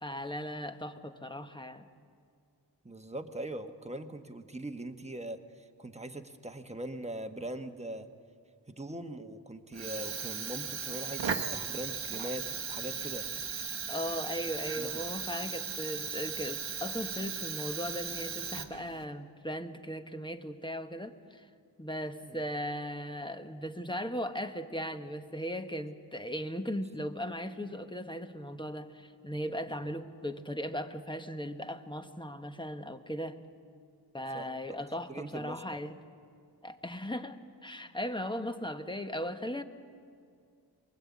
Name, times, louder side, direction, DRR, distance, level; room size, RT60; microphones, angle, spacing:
voice 1, 0.0-1.9 13.9-21.5 21.8-33.4 34.1-35.9 36.6-39.6, equal, 10° left, 7 dB, 1.1 m, -37 dB
voice 2, 2.8-8.1 8.7-13.3 14.8-15.0 22.2-22.4 29.7-29.8 34.3-34.5 35.1-35.8, right 1 dB, 15° right, 7 dB, 1.2 m, -41 dB
Fire, 9.7-19.0, right 6 dB, 90° right, 1.2 m, -37 dB
23.0 x 21.5 x 8.5 m, 2.3 s
wide cardioid pair, 85°, 43 cm